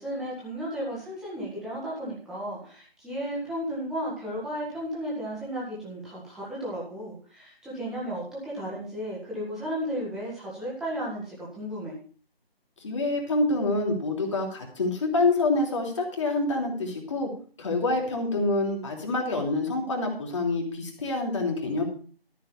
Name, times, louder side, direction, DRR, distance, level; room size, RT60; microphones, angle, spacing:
voice 1, 0.0-11.9, equal, ahead, -7 dB, 1.8 m, -34 dB
voice 2, 12.8-17.3 17.6-21.8, left 2 dB, 30° left, 1 dB, 3.1 m, -26 dB
13.5 x 6.4 x 6.9 m, 0.42 s
figure-of-eight pair, 160°, 30 cm